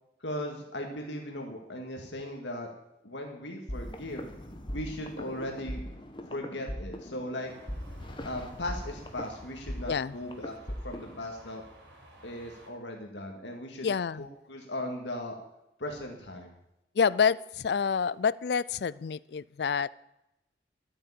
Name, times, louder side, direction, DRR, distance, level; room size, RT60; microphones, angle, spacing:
voice 1, 0.2-2.7 3.0-4.3 4.7-5.8 6.3-7.5 8.2-10.5 10.8-11.6 12.2-13.9 14.2-15.4 15.8-16.6, left 1 dB, 80° left, 2 dB, 2.1 m, -38 dB
sound 1, 3.7-11.2, equal, 25° left, 1.4 m, -40 dB
sound 2, 7.4-12.7, right 1 dB, 80° right, 4.3 m, -54 dB
voice 2, 13.8-14.2 17.0-19.9, left 6 dB, 65° left, 20 dB, 0.4 m, -28 dB
13.0 x 8.8 x 8.7 m, 0.88 s
head